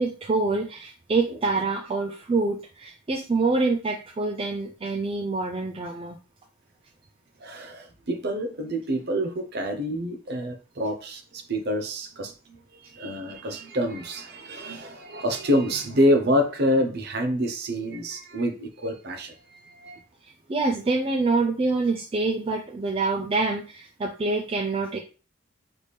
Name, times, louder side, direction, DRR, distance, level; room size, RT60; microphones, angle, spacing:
voice 1, 0.0-6.2 20.2-25.0, right 3 dB, 25° right, 4 dB, 0.3 m, -26 dB
voice 2, 7.4-12.6 12.9-20.0, equal, 50° right, 6 dB, 0.7 m, -27 dB
4.1 x 3.3 x 3.3 m, 0.35 s
head